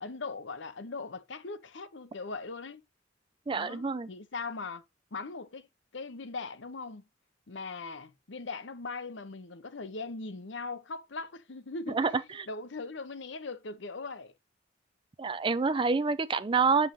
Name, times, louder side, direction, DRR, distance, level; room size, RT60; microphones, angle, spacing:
voice 1, 0.0-2.8 3.5-4.8 5.1-5.7 5.9-7.1 7.5-12.1 12.5-14.3, left 3 dB, 70° left, 0.9 m, -40 dB
voice 2, 3.5-4.1 11.9-12.1 12.4-12.5 15.2-16.9, right 4 dB, 25° right, 0.4 m, -27 dB
8.7 x 5.5 x 3.1 m
head